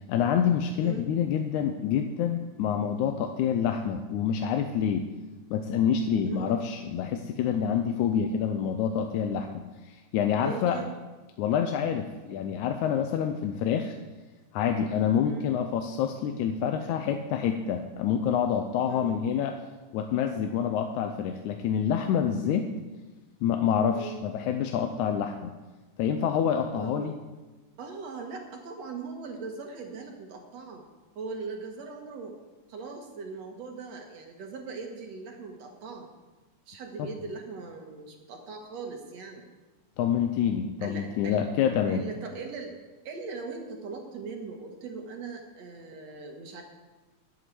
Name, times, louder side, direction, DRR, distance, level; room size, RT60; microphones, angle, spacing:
voice 1, 0.1-5.1 5.5-10.8 11.4-14.0 14.5-19.6 19.9-22.7 23.4-25.5 26.0-27.1 37.0-37.1 40.0-42.1, left 8 dB, 85° left, 6 dB, 2.1 m, -27 dB
voice 2, 6.2-6.6 10.3-10.9 15.2-15.5 18.9-19.2 22.4-22.6 23.9-24.2 26.7-27.1 27.8-30.8 31.2-32.4 32.7-36.1 36.7-39.5 40.8-41.4 41.9-42.7 43.0-46.6, right 4 dB, 60° right, 2 dB, 2.5 m, -40 dB
11.0 x 8.1 x 7.7 m, 1.2 s
omnidirectional pair, 3.4 m